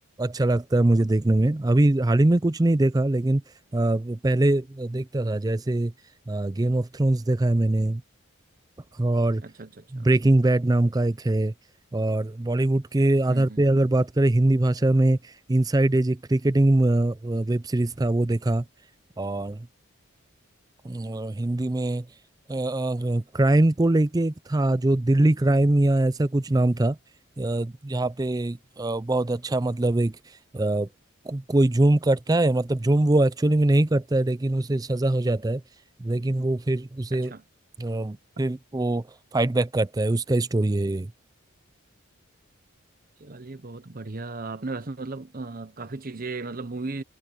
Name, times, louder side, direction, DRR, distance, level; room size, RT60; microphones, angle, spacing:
voice 1, 0.2-3.4 3.7-5.9 6.3-8.0 9.0-9.4 9.9-11.5 11.9-18.6 19.2-19.7 20.8-22.1 22.5-27.0 27.4-30.2 30.5-30.9 31.3-35.6 36.0-37.3 37.8-39.0 39.3-41.1, right 1 dB, 15° right, 0.4 m, -22 dB
voice 2, 9.4-10.1 13.3-13.6 37.1-37.4 43.2-47.0, right 3 dB, 40° right, 0.9 m, -36 dB
head